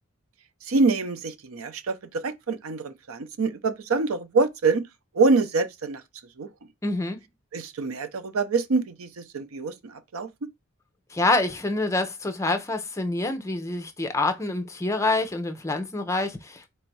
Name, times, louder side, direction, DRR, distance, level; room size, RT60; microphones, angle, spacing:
voice 1, 0.7-4.8 5.1-6.0 6.4-6.5 7.5-10.3, right 4 dB, 85° right, 0.6 m, -25 dB
voice 2, 6.8-7.2 11.1-16.6, left 2 dB, 15° left, 0.6 m, -26 dB
4.3 x 2.6 x 4.5 m
head